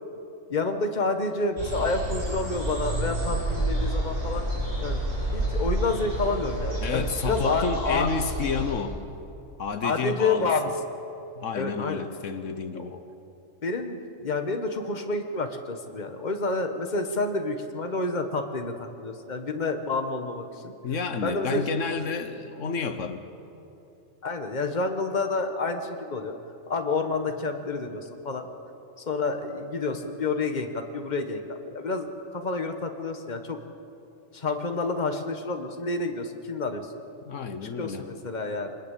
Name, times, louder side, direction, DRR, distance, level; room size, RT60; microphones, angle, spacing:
voice 1, 0.5-4.5 4.8-5.0 5.3-8.1 9.8-10.7 11.5-12.0 12.7-12.8 13.6-20.7 21.2-21.6 22.0-22.2 24.2-26.3 26.7-28.5 29.1-33.6 34.3-37.0 37.6-38.8, left 3 dB, 35° left, 6 dB, 1.6 m, -29 dB
sound 1, 1.6-8.7, right 1 dB, 80° right, 8.6 m, -29 dB
voice 2, 6.8-9.0 9.6-10.5 11.4-13.0 20.8-23.2 37.3-38.0, left 5 dB, 80° left, 9 dB, 1.4 m, -30 dB
25.0 x 20.0 x 8.4 m, 2.9 s
omnidirectional pair, 1.3 m